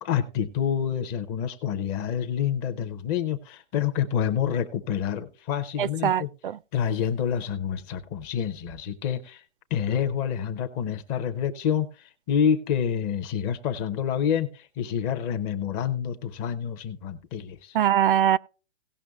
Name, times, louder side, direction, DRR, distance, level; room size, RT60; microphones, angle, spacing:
voice 1, 0.0-6.3 6.7-9.4 9.7-17.8, left 8 dB, 15° left, 0.5 m, -28 dB
voice 2, 5.8-6.6 17.7-18.4, right 10 dB, 50° right, 0.4 m, -22 dB
17.5 x 5.9 x 3.4 m
hypercardioid pair, 155°, 35 cm